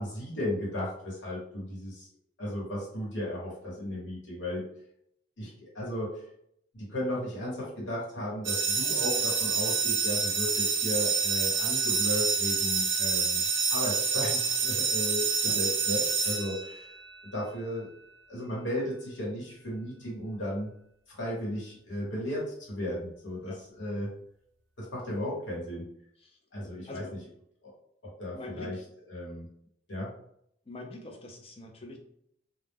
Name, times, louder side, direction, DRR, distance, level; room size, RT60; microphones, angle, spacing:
voice 1, 0.0-2.1 2.4-4.7 5.4-5.5 5.7-6.2 6.7-16.9 17.3-17.9 18.3-20.7 21.1-24.1 24.8-25.9 26.5-27.2 27.6-27.7 28.0-28.8 29.1-29.5 29.9-30.1, left 1 dB, 85° left, -4 dB, 1.1 m, -35 dB
sound 1, 8.4-17.1, right 5 dB, 80° right, 0.5 m, -28 dB
voice 2, 28.3-28.8 30.7-32.0, left 2 dB, 30° left, 2 dB, 0.5 m, -44 dB
2.2 x 2.0 x 3.3 m, 0.71 s
head